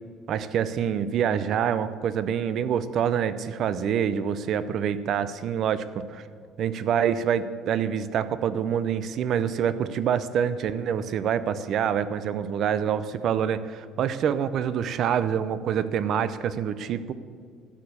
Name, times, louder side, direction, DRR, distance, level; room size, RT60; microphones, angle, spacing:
voice 1, 0.3-6.2 6.6-17.1, right 8 dB, 45° right, 14 dB, 0.5 m, -26 dB
12.0 x 6.8 x 8.4 m, 2.1 s
cardioid pair, 165°, 0 cm